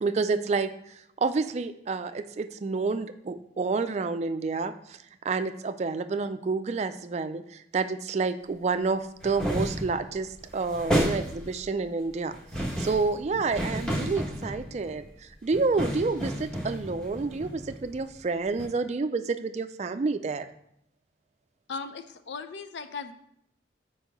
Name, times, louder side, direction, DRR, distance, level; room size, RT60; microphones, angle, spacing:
voice 1, 0.0-20.5, right 4 dB, 40° right, 10 dB, 0.4 m, -29 dB
sound 1, 9.2-10.0 10.4-11.6 12.3-15.0 15.5-18.2 18.6-18.7, equal, 5° left, 1.1 m, -31 dB
voice 2, 21.7-23.1, left 5 dB, 85° left, 10 dB, 0.5 m, -37 dB
4.6 x 4.5 x 5.2 m, 0.71 s
head